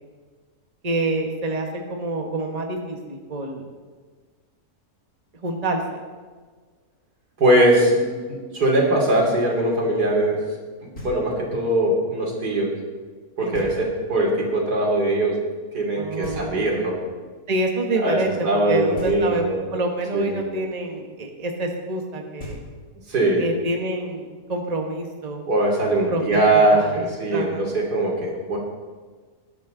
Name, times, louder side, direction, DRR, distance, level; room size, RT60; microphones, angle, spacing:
voice 1, 0.8-3.7 5.4-6.0 13.4-13.7 15.9-16.7 17.5-19.5 19.7-22.6 23.4-25.4 26.1-26.2 26.5-27.7, right 2 dB, 25° right, 2 dB, 1.4 m, -27 dB
voice 2, 7.4-10.4 11.0-12.7 13.4-15.3 15.7-17.0 18.0-18.2 18.4-19.6 20.1-20.4 23.1-23.4 25.5-28.6, right 1 dB, 80° right, -2 dB, 3.7 m, -21 dB
Knock, 10.9-11.6 13.5-14.2 16.2-17.0 18.9-19.7 22.0-22.1 22.4-23.2, left 1 dB, 55° left, 3.7 m, -39 dB
19.5 x 12.0 x 4.0 m, 1.5 s
omnidirectional pair, 1.7 m